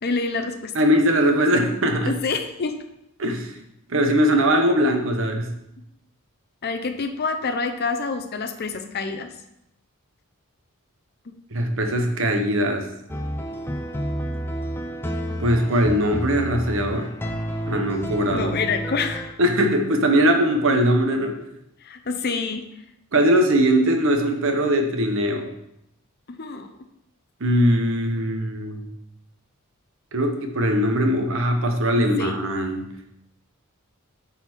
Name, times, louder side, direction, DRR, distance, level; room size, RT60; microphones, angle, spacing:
voice 1, 0.0-0.7 2.1-2.7 6.6-9.3 11.3-11.4 18.3-19.3 21.8-22.6 26.4-26.7 32.0-32.4, left 4 dB, 45° left, 7 dB, 0.7 m, -27 dB
voice 2, 0.7-2.1 3.2-3.5 3.9-5.5 11.5-12.9 15.4-17.1 17.7-18.6 19.4-21.4 23.1-25.5 27.4-28.9 30.1-32.9, equal, 60° right, 5 dB, 1.0 m, -21 dB
sound 1, 13.1-19.3, equal, 10° left, 0.5 m, -30 dB
9.5 x 4.2 x 4.5 m, 0.82 s
head